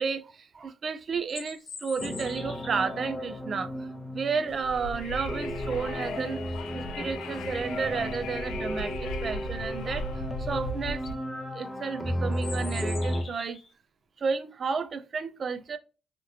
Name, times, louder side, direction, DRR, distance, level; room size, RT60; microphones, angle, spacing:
voice 1, 0.0-3.9 4.1-6.4 6.7-11.2 11.5-13.6 14.2-15.8, right 5 dB, 45° right, 0.4 m, -32 dB
sound 1, 1.1-2.9 7.5-7.6 8.0-8.4 10.4-10.5 10.9-11.2 12.3-13.7, left 4 dB, 50° left, 0.8 m, -44 dB
sound 2, 2.0-13.2, equal, ahead, 0.6 m, -34 dB
Wind, 4.5-11.1, left 1 dB, 85° left, 0.5 m, -38 dB
2.8 x 2.8 x 2.3 m
cardioid pair, 90°, 0 cm